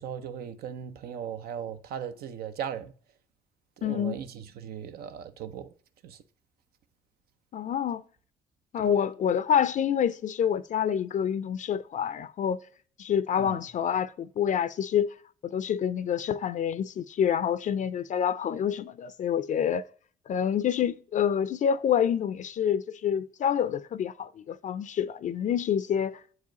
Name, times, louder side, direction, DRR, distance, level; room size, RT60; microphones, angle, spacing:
voice 1, 0.0-2.9 3.8-5.7 6.0-6.2 8.8-8.9 13.4-13.6, right 8 dB, 70° right, 0.6 m, -38 dB
voice 2, 3.8-4.2 7.5-8.0 8.7-12.6 13.0-15.1 15.4-19.8 20.3-26.2, left 8 dB, 50° left, 0.4 m, -27 dB
7.9 x 4.8 x 2.9 m
supercardioid pair, 55°, 16 cm